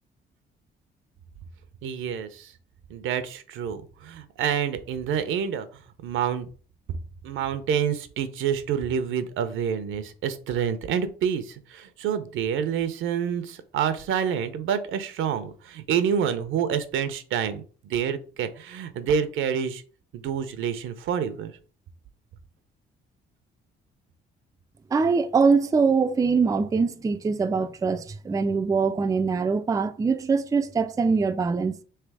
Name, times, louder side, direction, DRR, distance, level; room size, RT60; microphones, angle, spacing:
voice 1, 1.8-2.5 2.9-6.5 7.2-19.8 20.1-21.5, right 8 dB, 80° right, 0.7 m, -28 dB
voice 2, 24.9-31.7, right 5 dB, 15° right, 0.3 m, -23 dB
3.3 x 3.3 x 4.7 m
cardioid pair, 90°, 20 cm